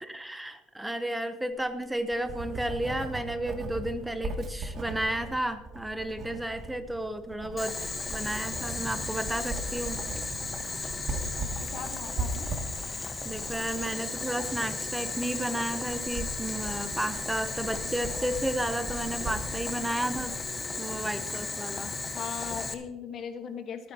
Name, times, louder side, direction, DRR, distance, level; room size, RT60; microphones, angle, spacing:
voice 1, 0.0-7.8 8.1-10.0 12.9-20.4 20.8-21.9, right 1 dB, 5° right, 9 dB, 0.8 m, -32 dB
Writing, 1.7-20.4, right 2 dB, 45° right, 2.4 m, -39 dB
Boiling, 7.6-22.7, left 3 dB, 20° left, 1.2 m, -35 dB
voice 2, 11.4-12.5 22.1-23.9, left 7 dB, 50° left, 7 dB, 1.4 m, -39 dB
24.5 x 9.4 x 2.9 m, 1.1 s
cardioid pair, 115°, 0 cm